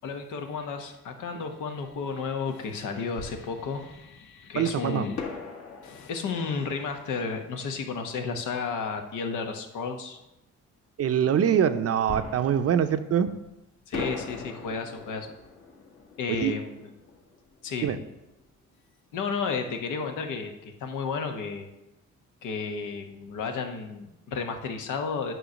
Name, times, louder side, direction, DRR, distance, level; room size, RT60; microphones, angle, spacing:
voice 1, 0.0-5.2 5.8-10.2 13.9-15.3 16.2-16.9 17.6-17.9 19.1-21.7 22.4-25.3, left 5 dB, 80° left, 5 dB, 1.0 m, -32 dB
Fireworks, 3.2-4.3 5.2-8.6 12.1-13.5 13.9-18.5 18.7-18.8 19.3-19.6, left 4 dB, 55° left, 1.5 m, -41 dB
voice 2, 4.5-5.1 11.0-13.3 16.3-16.5 17.8-18.0, right 8 dB, 50° right, 10 dB, 0.6 m, -24 dB
9.1 x 3.1 x 6.3 m, 0.93 s
cardioid pair, 90°, 30 cm